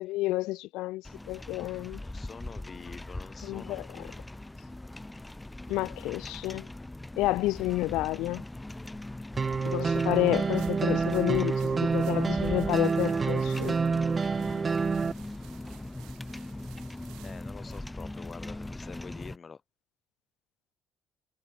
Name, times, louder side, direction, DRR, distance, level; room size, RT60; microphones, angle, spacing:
voice 1, 0.0-2.0 3.4-3.9 5.7-6.7 7.2-8.4 9.6-13.8, left 18 dB, 80° left, 0.3 m, -30 dB
sound 1, 1.0-19.4, left 1 dB, 5° left, 1.8 m, -41 dB
voice 2, 1.6-4.2 17.2-19.6, left 5 dB, 20° left, 2.2 m, -47 dB
sound 2, 9.4-15.1, right 5 dB, 20° right, 0.5 m, -27 dB
sound 3, 10.5-17.8, right 19 dB, 85° right, 4.5 m, -56 dB
cardioid pair, 180°, 0 cm